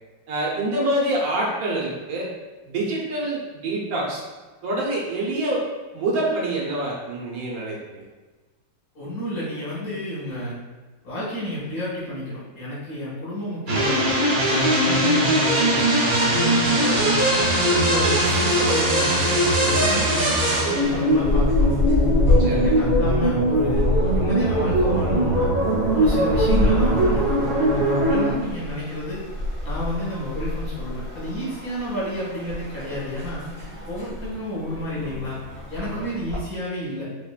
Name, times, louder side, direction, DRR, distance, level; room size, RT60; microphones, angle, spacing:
voice 1, 0.3-2.3 2.7-4.2 4.6-5.6 5.9-8.0 22.4-22.8 35.8-36.0, right 1 dB, 70° right, -3 dB, 1.3 m, -26 dB
voice 2, 8.9-10.6 11.0-14.0 14.4-17.2 17.7-21.8 22.3-23.8 24.1-25.5 25.9-29.2 29.6-33.5 33.9-35.4 35.7-37.0, left 1 dB, 85° left, -8 dB, 2.2 m, -30 dB
sound 1, 13.7-28.3, right 1 dB, 45° right, 0.7 m, -20 dB
sound 2, 20.8-36.4, left 2 dB, 25° left, 1.4 m, -27 dB
5.0 x 2.5 x 2.4 m, 1.3 s
omnidirectional pair, 1.6 m